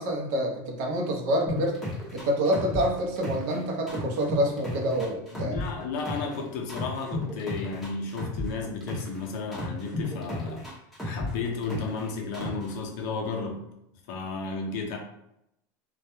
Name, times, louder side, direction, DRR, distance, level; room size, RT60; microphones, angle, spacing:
voice 1, 0.0-1.8 2.1-5.6, equal, 55° right, 1 dB, 0.5 m, -27 dB
sound 1, 1.5-3.6 3.9-6.4 6.7-9.2 9.5-12.0 12.3-12.7, left 1 dB, ahead, 0.6 m, -33 dB
voice 2, 5.3-10.7 11.0-13.6 14.1-15.0, left 4 dB, 65° left, 2 dB, 0.6 m, -33 dB
2.2 x 2.1 x 2.9 m, 0.81 s
cardioid pair, 170°, 11 cm